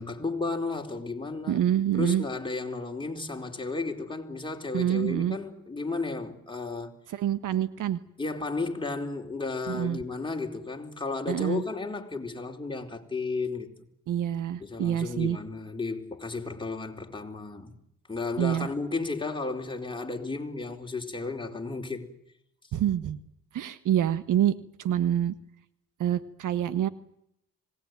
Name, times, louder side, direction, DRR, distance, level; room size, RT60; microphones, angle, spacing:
voice 1, 0.0-1.6 1.9-6.9 8.2-13.9 14.6-17.7 18.1-22.1, left 3 dB, 15° left, 4.3 m, -33 dB
voice 2, 1.5-2.2 4.7-5.4 7.1-8.0 9.7-10.0 11.3-11.6 14.1-15.4 18.4-18.7 22.7-23.2 23.5-25.3 26.0-26.9, right 10 dB, 65° right, 1.4 m, -26 dB
25.5 x 19.5 x 9.4 m
supercardioid pair, 70°, 33 cm